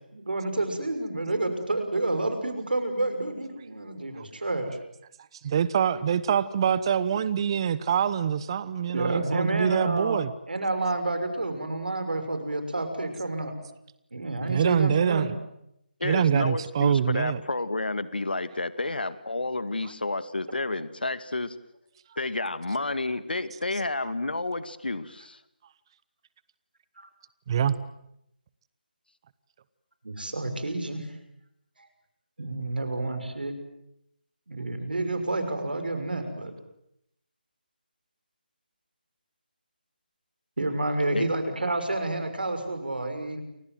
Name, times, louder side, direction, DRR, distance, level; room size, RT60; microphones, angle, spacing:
voice 1, 0.1-4.8 8.9-10.2 10.5-13.5 14.1-15.3 30.0-31.1 32.4-33.5 34.5-36.5 40.6-43.4, right 2 dB, 70° right, 8 dB, 6.2 m, -29 dB
voice 2, 5.4-10.3 14.5-15.3 16.0-17.4 27.5-27.8, right 8 dB, 30° right, 17 dB, 1.0 m, -25 dB
voice 3, 16.0-21.5 22.2-25.4 41.1-41.3, left 2 dB, 70° left, 13 dB, 2.1 m, -30 dB
29.0 x 25.5 x 7.8 m, 0.80 s
figure-of-eight pair, 155°, 5 cm